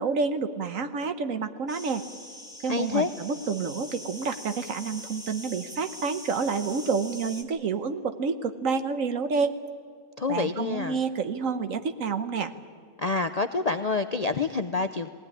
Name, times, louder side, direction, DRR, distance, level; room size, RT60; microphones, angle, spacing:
voice 1, 0.0-2.0 2.6-9.5 10.3-12.5, right 5 dB, 70° right, 10 dB, 1.4 m, -29 dB
sound 1, 1.7-7.4, left 1 dB, 5° right, 1.7 m, -43 dB
voice 2, 2.7-3.1 10.2-11.0 13.0-15.1, left 4 dB, 45° left, 8 dB, 0.5 m, -27 dB
19.5 x 18.0 x 9.9 m, 2.2 s
omnidirectional pair, 1.5 m